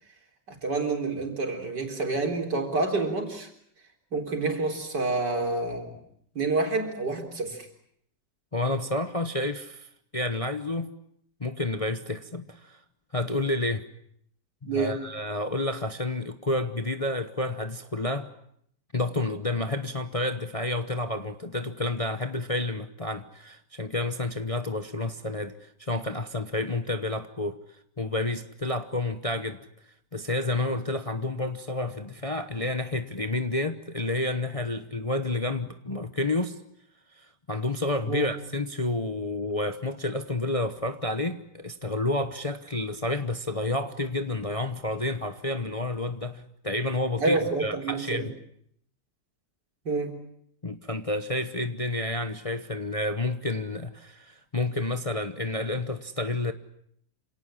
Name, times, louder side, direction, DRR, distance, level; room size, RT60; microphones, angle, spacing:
voice 1, 0.5-3.5 4.1-6.0 6.3-7.7 14.6-15.1 38.1-38.3 47.2-48.3 49.8-50.2, right 3 dB, 75° right, 4.6 m, -28 dB
voice 2, 8.5-10.9 11.4-12.8 13.1-13.9 14.7-18.3 18.9-27.6 28.0-29.6 30.1-36.6 37.2-48.3 50.6-56.5, left 2 dB, 25° left, 0.9 m, -30 dB
27.0 x 18.0 x 9.8 m
omnidirectional pair, 1.9 m